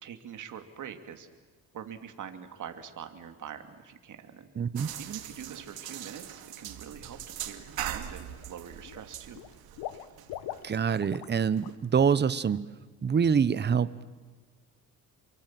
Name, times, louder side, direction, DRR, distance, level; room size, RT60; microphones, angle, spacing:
voice 1, 0.0-1.3 1.7-4.5 5.0-9.5, right 8 dB, 50° right, 7 dB, 2.9 m, -44 dB
voice 2, 4.6-4.9 10.6-12.6 13.0-14.0, right 7 dB, 25° right, 16 dB, 1.0 m, -25 dB
sound 1, 4.8-11.7, right 11 dB, 70° right, 2.5 m, -41 dB
Water / Liquid, 7.2-7.5 7.8-8.5 8.8-11.4 11.6-11.8 12.2-12.3, left 13 dB, 85° left, 1.4 m, -42 dB
29.0 x 23.5 x 7.7 m, 1.4 s
cardioid pair, 120°, 38 cm